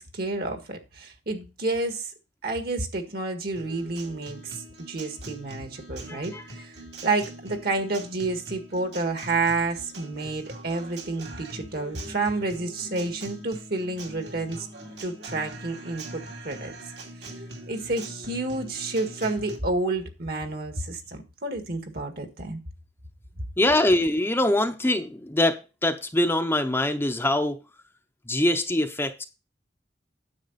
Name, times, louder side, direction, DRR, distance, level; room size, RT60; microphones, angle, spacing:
voice 1, 0.0-2.1 2.4-6.7 7.0-14.7 15.0-16.7 17.7-22.6, right 3 dB, 60° right, 1.8 m, -30 dB
Guitar, 3.6-19.6, right 1 dB, 75° right, 2.6 m, -42 dB
voice 2, 6.1-6.4 23.6-27.6 28.3-29.2, left 1 dB, 15° left, 0.7 m, -23 dB
9.8 x 7.1 x 4.1 m
head